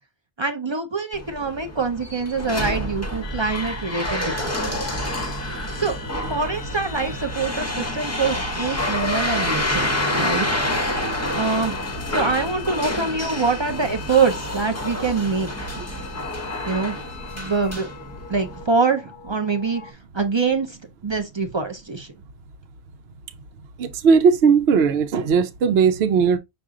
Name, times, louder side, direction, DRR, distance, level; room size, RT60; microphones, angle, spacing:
voice 1, 0.4-4.9 5.7-6.0 6.3-9.9 10.2-10.7 11.3-11.8 12.1-15.7 16.7-17.0 17.3-17.9 18.3-20.8 21.0-22.1, right 4 dB, 35° right, 0.5 m, -24 dB
sound 1, 1.1-18.6, left 1 dB, 15° left, 0.8 m, -28 dB
sound 2, 3.2-19.9, left 8 dB, 55° left, 0.6 m, -41 dB
voice 2, 23.8-26.4, right 6 dB, 75° right, 0.9 m, -18 dB
6.1 x 2.4 x 3.6 m
omnidirectional pair, 1.1 m